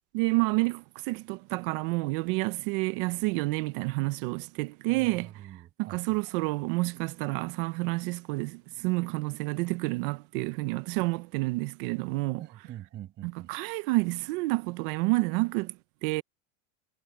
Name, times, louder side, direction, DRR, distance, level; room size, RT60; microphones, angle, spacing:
voice 1, 0.1-5.3 5.8-12.4 13.2-15.8 16.0-16.2, right 24 dB, 55° right, 0.6 m, -29 dB
voice 2, 4.9-6.2 12.4-13.5, right 13 dB, 30° right, 7.6 m, -45 dB
cardioid pair, 175°, 33 cm